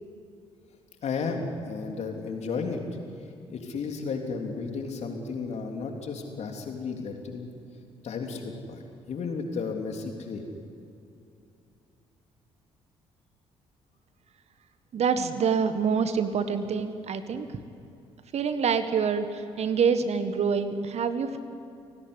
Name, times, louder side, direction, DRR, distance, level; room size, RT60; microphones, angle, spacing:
voice 1, 1.0-2.8 3.5-7.5 8.0-8.8 9.1-10.5, left 4 dB, 50° left, 3 dB, 3.4 m, -33 dB
voice 2, 14.9-17.5 18.3-21.4, right 6 dB, 45° right, 10 dB, 1.7 m, -26 dB
30.0 x 18.0 x 10.0 m, 2.6 s
figure-of-eight pair, 45°, 15 cm